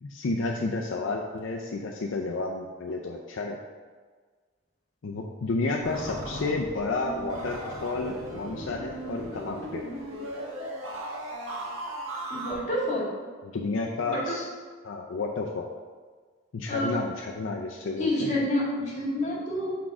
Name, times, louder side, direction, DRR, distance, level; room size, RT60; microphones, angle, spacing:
voice 1, 0.0-3.6 5.0-9.8 13.4-14.5 14.8-15.7 16.5-18.4, left 3 dB, 70° left, 0 dB, 0.5 m, -31 dB
sound 1, 5.8-12.5, right 1 dB, 90° right, 1.2 m, -37 dB
voice 2, 12.3-13.1 14.1-14.4 16.7-17.0 17.9-19.8, left 1 dB, 35° left, -5 dB, 1.9 m, -28 dB
6.1 x 3.8 x 4.8 m, 1.5 s
head